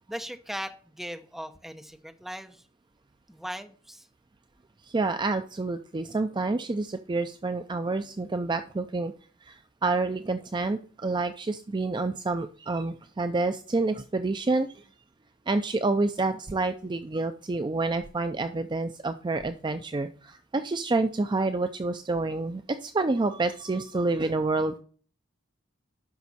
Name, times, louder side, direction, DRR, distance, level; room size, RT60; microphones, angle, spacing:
voice 1, 0.1-2.6 3.3-4.1, equal, ahead, 0.8 m, -38 dB
voice 2, 4.8-9.1 9.5-14.8 15.5-24.8, right 3 dB, 25° right, 0.4 m, -28 dB
10.5 x 6.1 x 4.1 m
head